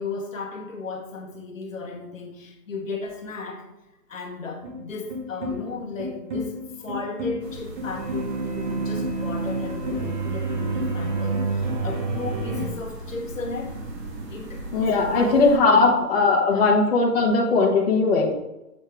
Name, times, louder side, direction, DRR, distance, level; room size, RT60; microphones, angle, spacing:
voice 1, 0.0-3.7 4.1-13.8 14.3-14.6 15.1-15.4 15.7-15.9 16.5-16.7, left 4 dB, 50° left, 2 dB, 1.3 m, -35 dB
sound 1, 4.6-12.7, right 2 dB, 30° right, 1.1 m, -29 dB
sound 2, 7.4-15.6, right 1 dB, 80° right, 2.1 m, -38 dB
voice 2, 14.7-18.3, left 3 dB, 35° left, -4 dB, 1.1 m, -19 dB
7.4 x 3.5 x 4.7 m, 0.95 s
hypercardioid pair, 165°, 49 cm